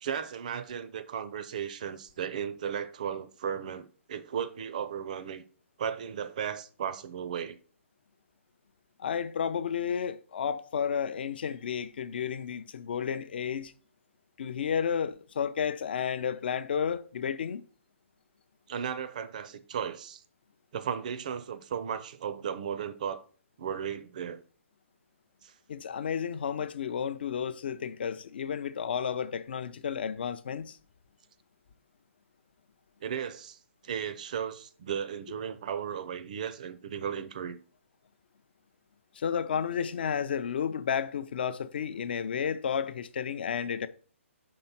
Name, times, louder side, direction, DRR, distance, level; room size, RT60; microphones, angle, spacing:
voice 1, 0.0-5.4 5.8-7.6 18.7-20.2 20.7-23.2 23.6-24.4 25.4-25.5 33.0-33.6 33.8-37.6, right 8 dB, 35° right, 0.4 m, -35 dB
voice 2, 9.0-13.7 14.4-17.6 25.7-30.8 39.2-43.9, left 7 dB, 45° left, 0.5 m, -32 dB
5.4 x 3.8 x 5.8 m
hypercardioid pair, 170°, 7 cm